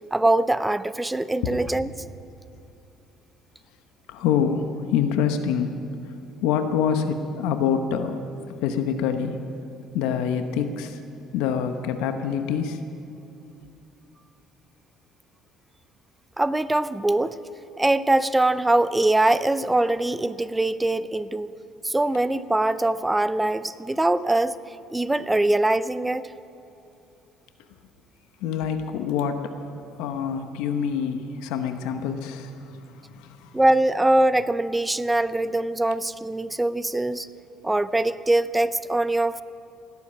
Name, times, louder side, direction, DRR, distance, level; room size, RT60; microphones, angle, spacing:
voice 1, 0.1-1.9 16.4-17.4 17.8-21.5 21.8-24.6 24.9-26.2 33.5-37.3 37.6-39.4, right 2 dB, 10° right, 15 dB, 0.5 m, -22 dB
voice 2, 4.1-5.8 6.4-8.2 8.6-9.4 9.9-11.0 11.3-12.8 28.4-29.5 30.0-33.6, left 7 dB, 85° left, 7 dB, 1.0 m, -26 dB
17.5 x 8.3 x 9.9 m, 2.7 s
cardioid pair, 115°, 0 cm